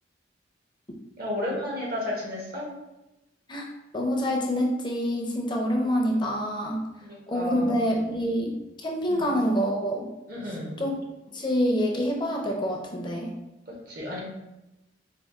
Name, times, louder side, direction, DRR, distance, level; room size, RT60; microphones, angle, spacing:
voice 1, 1.2-2.7 7.0-7.9 9.1-9.3 10.3-10.8 13.7-14.2, left 1 dB, 55° right, -3 dB, 1.2 m, -33 dB
voice 2, 3.9-6.8 7.3-10.1 10.8-10.9 11.3-13.3, equal, 25° left, -1 dB, 0.5 m, -26 dB
4.7 x 2.4 x 3.5 m, 0.95 s
head